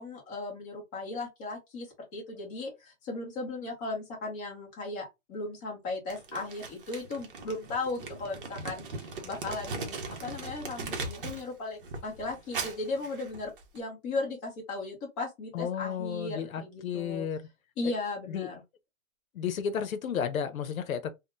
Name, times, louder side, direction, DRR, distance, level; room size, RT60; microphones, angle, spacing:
voice 1, 0.0-1.9 2.1-17.3 17.8-18.6, left 3 dB, 15° left, 0.9 m, -36 dB
Crumpling crinkling, 6.1-11.5 11.8-13.8, right 3 dB, 40° right, 0.8 m, -39 dB
voice 2, 15.5-17.4 18.3-18.5 19.3-21.1, left 7 dB, 85° left, 0.7 m, -32 dB
3.6 x 2.2 x 2.6 m
hypercardioid pair, 170°, 40 cm